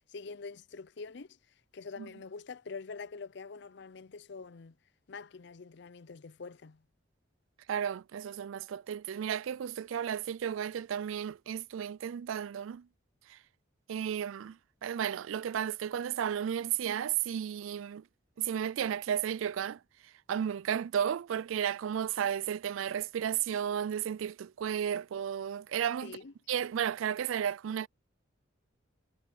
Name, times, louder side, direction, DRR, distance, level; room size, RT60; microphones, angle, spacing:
voice 1, 0.0-1.4 1.7-4.8 5.1-6.8 26.0-26.3, left 4 dB, 60° left, 0.5 m, -45 dB
voice 2, 7.7-12.9 13.3-13.4 13.9-18.0 18.4-19.8 20.3-26.2 26.5-27.9, right 9 dB, 85° right, 0.3 m, -33 dB
head